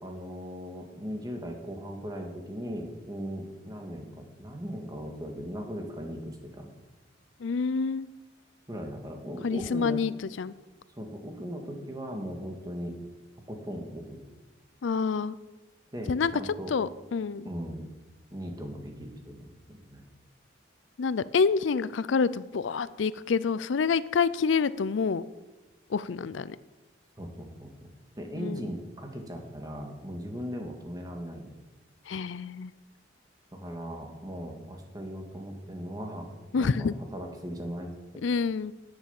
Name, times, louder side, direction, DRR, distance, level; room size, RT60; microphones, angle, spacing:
voice 1, 0.0-6.7 8.7-10.0 11.0-13.0 13.5-14.2 15.9-16.7 17.4-17.9 18.3-20.0 27.2-31.5 33.5-36.3 36.5-38.2, equal, 20° right, 3 dB, 1.9 m, -38 dB
voice 2, 7.4-8.1 9.4-10.1 10.4-10.5 14.8-15.4 16.1-16.3 16.7-17.5 21.0-25.2 25.9-26.6 28.4-28.7 32.1-32.7 36.5-36.9 38.2-38.7, left 5 dB, 80° left, 17 dB, 0.4 m, -27 dB
11.0 x 8.9 x 7.0 m, 1.1 s
head